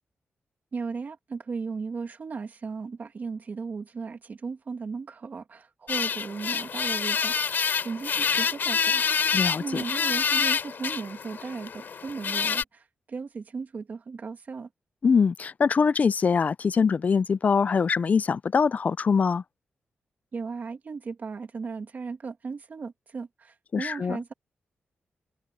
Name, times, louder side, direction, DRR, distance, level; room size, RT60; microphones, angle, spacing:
voice 1, 0.7-9.0 9.6-14.7 20.3-24.3, right 5 dB, 45° right, 2.4 m, -36 dB
sound 1, 5.9-12.6, left 6 dB, 60° left, 3.2 m, -27 dB
voice 2, 9.3-9.8 15.0-19.4 23.7-24.2, left 5 dB, 40° left, 0.4 m, -23 dB
wide cardioid pair, 115°, 4 cm